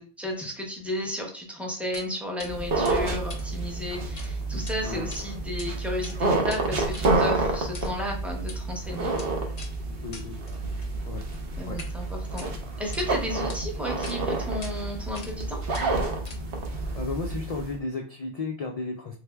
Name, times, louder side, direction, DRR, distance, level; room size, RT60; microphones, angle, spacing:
voice 1, 0.0-9.1 11.6-12.5 12.8-15.6, left 1 dB, ahead, 0 dB, 0.6 m, -33 dB
sound 1, 1.9-2.1 2.4-2.5 2.8-4.3 4.6-4.7 5.1-5.7 5.9-11.9 12.3-13.1 13.5-13.6 14.0-14.2 14.6-14.7 15.1-15.4 15.7-16.7, left 3 dB, 40° left, 0.7 m, -44 dB
sound 2, 2.5-17.7, right 2 dB, 60° right, 0.9 m, -29 dB
voice 2, 10.0-10.4 11.1-11.2 11.7-11.9 16.9-19.2, left 3 dB, 65° left, 2 dB, 0.3 m, -34 dB
3.3 x 3.2 x 2.3 m, 0.41 s
omnidirectional pair, 1.1 m